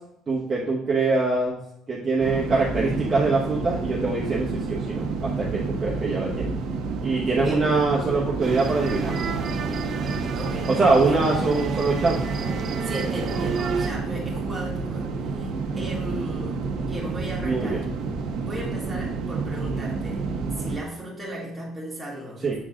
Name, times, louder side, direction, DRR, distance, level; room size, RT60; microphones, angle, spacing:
voice 1, 0.3-1.6 1.9-6.5 7.0-9.2 10.7-12.2 17.4-17.8 22.4-22.5, right 3 dB, 20° right, -6 dB, 1.1 m, -23 dB
sound 1, 2.2-20.8, right 4 dB, 65° right, 1.0 m, -30 dB
voice 2, 7.4-7.7 10.4-11.3 12.8-17.9 18.4-20.2 20.5-22.5, right 1 dB, 5° right, -5 dB, 2.1 m, -36 dB
sound 2, 8.4-13.9, right 5 dB, 40° right, 0.7 m, -31 dB
7.5 x 4.0 x 3.7 m, 0.79 s
cardioid pair, 160°, 0 cm